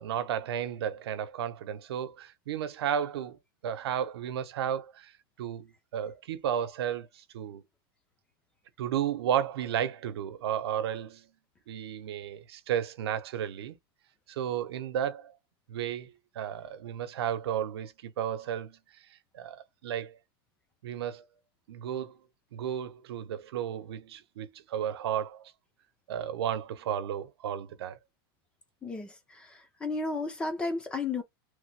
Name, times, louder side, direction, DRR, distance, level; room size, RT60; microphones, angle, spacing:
voice 1, 0.0-5.1 5.4-7.6 8.8-11.3 11.7-13.7 14.3-15.4 15.7-18.8 19.3-20.2 20.8-21.2 21.7-22.2 22.5-25.5 26.1-28.0, right 9 dB, 80° right, 0.7 m, -33 dB
voice 2, 28.8-31.2, left 3 dB, 10° left, 0.3 m, -33 dB
3.2 x 2.1 x 3.2 m
supercardioid pair, 175°, 13 cm